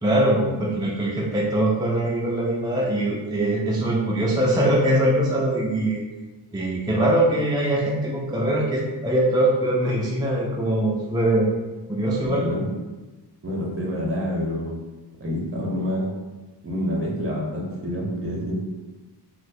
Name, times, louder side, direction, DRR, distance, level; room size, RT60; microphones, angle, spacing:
voice 1, 0.0-6.0 6.5-11.5 11.9-12.5, right 1 dB, 10° right, -4 dB, 0.3 m, -22 dB
voice 2, 12.2-12.7 13.4-14.8 15.2-16.1 16.6-18.6, equal, 30° right, -2 dB, 0.8 m, -27 dB
4.2 x 2.1 x 2.6 m, 1.2 s
wide cardioid pair, 105°, 43 cm